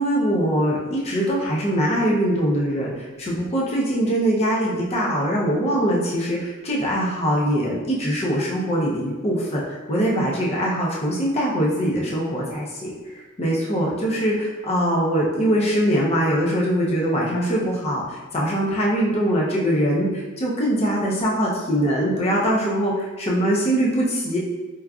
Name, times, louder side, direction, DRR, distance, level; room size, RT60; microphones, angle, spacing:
voice 1, 0.0-24.4, equal, 30° left, -4 dB, 0.5 m, -22 dB
4.5 x 2.5 x 2.3 m, 1.3 s
head